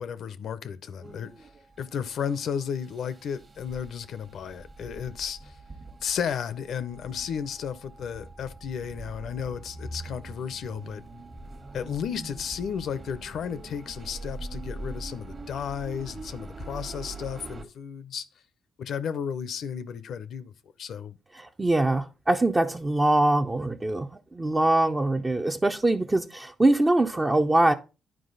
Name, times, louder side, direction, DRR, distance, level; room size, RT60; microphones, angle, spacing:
voice 1, 0.0-1.5 1.8-5.6 6.0-11.0 11.7-18.3 18.8-20.5 20.8-21.2, left 7 dB, 65° left, 0.6 m, -33 dB
sound 1, 1.0-17.7, right 2 dB, 35° right, 1.3 m, -43 dB
voice 2, 21.3-27.7, right 2 dB, 20° right, 0.5 m, -23 dB
10.0 x 4.7 x 3.9 m
cardioid pair, 90°, 0 cm